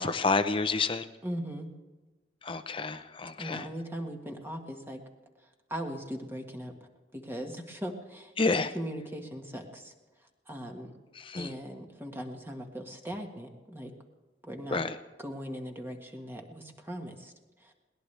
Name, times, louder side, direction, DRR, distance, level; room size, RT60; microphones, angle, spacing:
voice 1, 0.0-1.1 2.4-3.7 8.4-8.7 11.1-11.5 14.7-15.0, left 3 dB, 30° left, 10 dB, 0.8 m, -29 dB
voice 2, 1.2-1.7 3.4-5.0 5.4-6.7 7.1-8.3 8.7-9.9 10.5-10.9 11.4-13.9 14.4-14.8 15.2-17.3 17.6-17.7, equal, 15° right, 3 dB, 1.5 m, -39 dB
21.5 x 18.5 x 3.4 m, 1.2 s
head